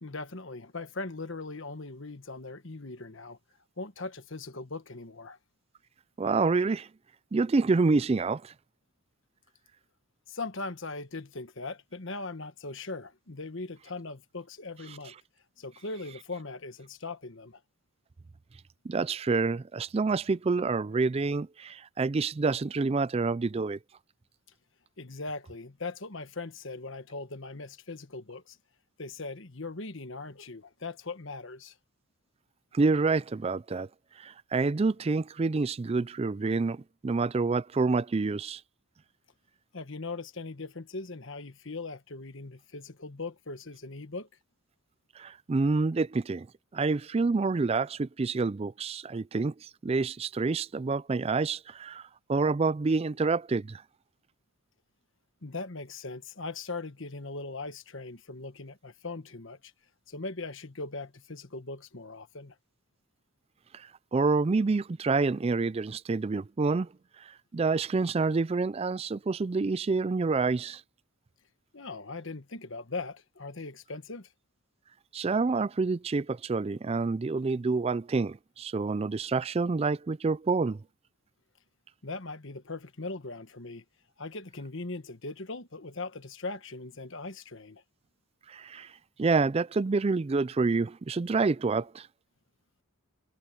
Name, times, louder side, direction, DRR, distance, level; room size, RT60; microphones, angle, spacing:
voice 1, 0.0-3.4 3.8-5.4 10.3-15.1 15.6-17.6 25.0-28.6 29.0-31.8 39.7-44.3 55.4-59.7 60.1-62.6 71.7-74.3 82.0-83.8 84.2-87.8, left 3 dB, 60° left, 1.4 m, -40 dB
voice 2, 6.2-6.9 7.3-8.5 18.8-23.8 32.7-33.9 34.2-38.6 45.2-46.5 46.7-52.0 52.3-53.8 63.7-66.9 67.2-70.8 75.1-80.8 88.5-88.9 89.2-92.1, right 4 dB, 30° right, 0.3 m, -28 dB
head